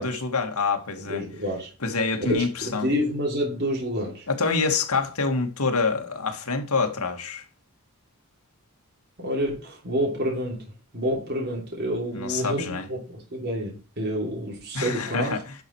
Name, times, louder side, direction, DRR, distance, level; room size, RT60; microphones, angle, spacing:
voice 1, 0.0-1.2 1.8-2.9 4.3-7.4 12.1-12.9 14.7-15.5, left 4 dB, 80° left, 2.0 m, -26 dB
voice 2, 1.1-1.7 2.2-4.3 9.2-10.7 10.9-15.4, equal, 50° right, 3.3 m, -28 dB
10.5 x 6.0 x 4.6 m
head